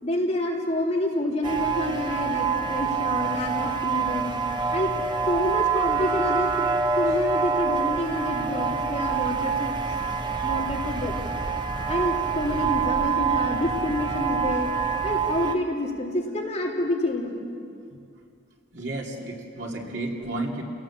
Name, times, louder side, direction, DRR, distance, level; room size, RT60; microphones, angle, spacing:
voice 1, 0.0-4.4 4.7-6.6 6.9-10.0 10.4-11.1 11.9-14.7 15.0-17.4, left 1 dB, 35° left, -2 dB, 3.3 m, -28 dB
sound 1, 1.4-15.5, right 5 dB, 25° right, 1.0 m, -26 dB
voice 2, 18.7-20.6, right 2 dB, 60° right, 0 dB, 2.9 m, -32 dB
29.0 x 17.5 x 7.4 m, 2.3 s
head